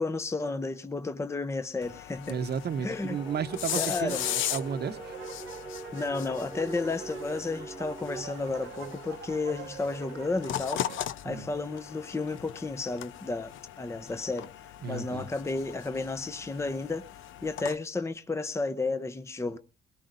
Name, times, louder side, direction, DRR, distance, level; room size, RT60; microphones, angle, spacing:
voice 1, 0.0-2.4 2.8-3.2 3.8-4.2 5.9-10.8 11.2-13.5 13.8-14.5 14.9-17.0 17.4-19.6, left 3 dB, 15° left, 0.7 m, -32 dB
sound 1, 1.8-17.8, left 11 dB, 80° left, 0.7 m, -39 dB
voice 2, 2.3-5.1 11.2-11.5 14.8-15.3, right 7 dB, 55° right, 1.0 m, -33 dB
sound 2, 3.1-8.2, right 3 dB, 15° right, 1.1 m, -43 dB
sound 3, 3.7-11.1, right 12 dB, 85° right, 1.0 m, -46 dB
22.0 x 18.0 x 2.6 m
cardioid pair, 90°, 20 cm